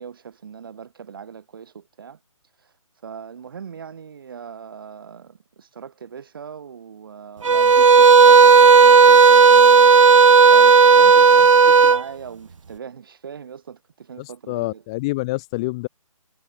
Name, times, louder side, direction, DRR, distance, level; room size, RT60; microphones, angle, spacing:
voice 1, 0.0-2.2 2.6-2.7 3.0-9.9 10.5-14.8, right 7 dB, 40° right, 6.6 m, -39 dB
sound 1, 7.4-12.0, right 5 dB, 65° right, 0.4 m, -11 dB
voice 2, 14.2-15.9, left 22 dB, 10° left, 0.6 m, -27 dB
figure-of-eight pair, 145°, 18 cm